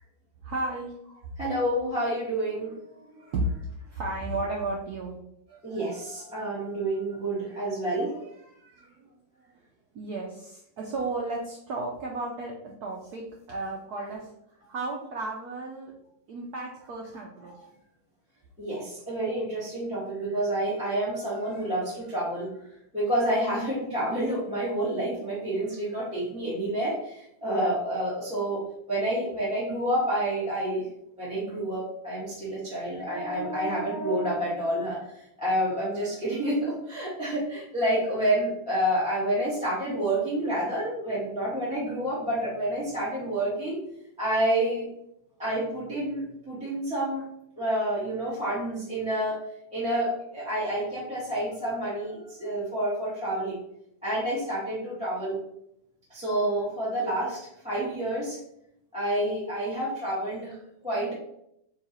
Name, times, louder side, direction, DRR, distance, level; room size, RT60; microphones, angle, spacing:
voice 1, 0.4-0.9 3.3-5.2 8.8-9.1 9.9-14.3 14.7-15.9 16.3-17.5, right 2 dB, 80° right, -1 dB, 0.8 m, -33 dB
voice 2, 1.4-3.3 5.5-8.3 18.6-22.5 22.9-28.6 28.9-30.8 31.2-35.0 35.4-43.8 44.2-44.9 45.4-47.2 47.6-49.4 49.7-53.6 54.0-55.4 56.1-58.4 58.9-60.6 60.8-61.1, right 1 dB, 5° right, -10 dB, 1.4 m, -29 dB
3.8 x 3.1 x 4.1 m, 0.77 s
omnidirectional pair, 2.4 m